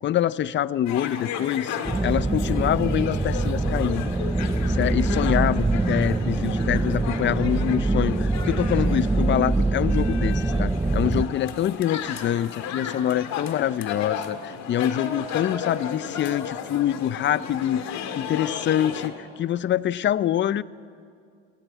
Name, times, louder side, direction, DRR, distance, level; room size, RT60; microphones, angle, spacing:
voice 1, 0.0-4.1 4.7-20.6, left 11 dB, 40° left, 18 dB, 0.6 m, -25 dB
sound 1, 0.9-19.1, left 7 dB, 60° left, 1.9 m, -34 dB
sound 2, 1.8-11.2, right 2 dB, 10° right, 0.5 m, -24 dB
23.5 x 15.5 x 8.4 m, 2.3 s
cardioid pair, 105°, 31 cm